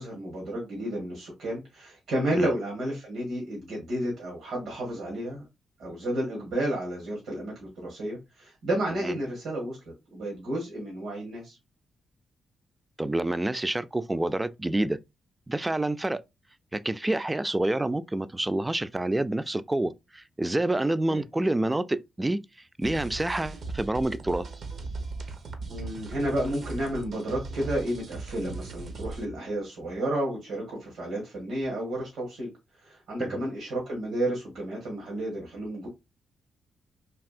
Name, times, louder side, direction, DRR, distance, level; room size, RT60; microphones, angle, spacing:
voice 1, 0.0-5.5 5.8-9.8 10.1-11.6 21.1-21.2 25.7-32.5 32.8-35.9, right 1 dB, 85° right, 1.6 m, -31 dB
voice 2, 13.0-15.0 15.5-16.2 16.7-22.4 22.8-24.5 33.2-33.4, right 1 dB, 20° right, 0.3 m, -28 dB
sound 1, 22.8-29.3, right 3 dB, 65° right, 0.7 m, -38 dB
3.4 x 2.6 x 2.4 m
supercardioid pair, 50°, 0 cm